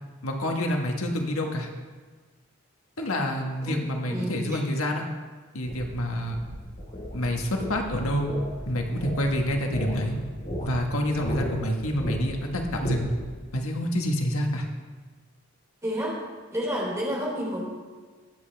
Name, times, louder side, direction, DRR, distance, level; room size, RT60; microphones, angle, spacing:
voice 1, 0.2-1.7 3.0-5.0 5.5-6.3 7.1-8.3 8.7-10.2 10.6-13.1 13.5-14.6, equal, 80° left, 2 dB, 1.5 m, -27 dB
voice 2, 4.1-4.6 15.8-16.2 16.5-17.6, equal, 15° right, -3 dB, 3.2 m, -30 dB
sound 1, 5.6-13.4, equal, 40° left, 3.9 m, -36 dB
21.5 x 8.0 x 3.4 m, 1.4 s
head